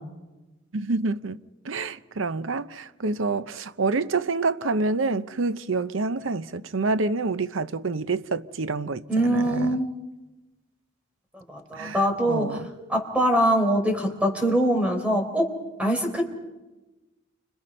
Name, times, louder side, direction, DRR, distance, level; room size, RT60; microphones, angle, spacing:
voice 1, 0.7-1.4 1.6-9.8 11.7-12.7, right 3 dB, 70° right, 0.8 m, -27 dB
voice 2, 9.1-9.9 11.5-12.6 12.9-15.5 15.8-16.2, equal, 5° right, 3.9 m, -23 dB
29.5 x 26.0 x 5.5 m
head